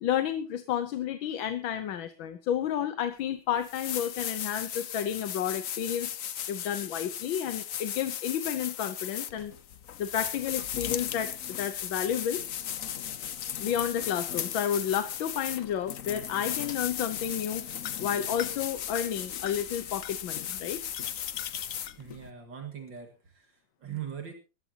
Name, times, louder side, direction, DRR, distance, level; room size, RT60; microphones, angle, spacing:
voice 1, 0.0-6.2 6.5-9.5 10.0-11.3 11.6-12.4 13.4-17.6 18.0-20.8, left 9 dB, 80° left, 10 dB, 1.7 m, -31 dB
sound 1, 3.1-3.2 3.6-22.3, left 10 dB, 55° left, 1.0 m, -36 dB
voice 2, 22.0-24.3, right 9 dB, 65° right, 4 dB, 2.7 m, -41 dB
21.0 x 14.5 x 2.8 m, 0.32 s
omnidirectional pair, 2.1 m